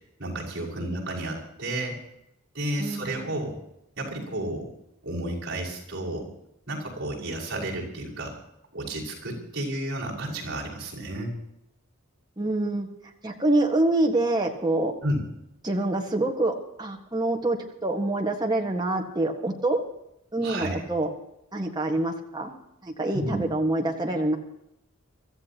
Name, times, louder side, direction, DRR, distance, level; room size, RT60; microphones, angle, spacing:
voice 1, 0.2-2.0 2.5-3.6 4.0-4.7 5.0-6.3 6.7-8.4 8.7-11.4 15.0-15.2 20.4-20.8 23.1-23.4, right 1 dB, 50° right, -5 dB, 5.8 m, -31 dB
voice 2, 2.8-3.1 12.4-12.9 13.2-14.9 15.6-19.8 20.3-21.1 21.5-22.6 22.8-24.4, right 2 dB, 20° right, 0 dB, 1.6 m, -26 dB
25.5 x 14.0 x 3.0 m, 0.82 s
head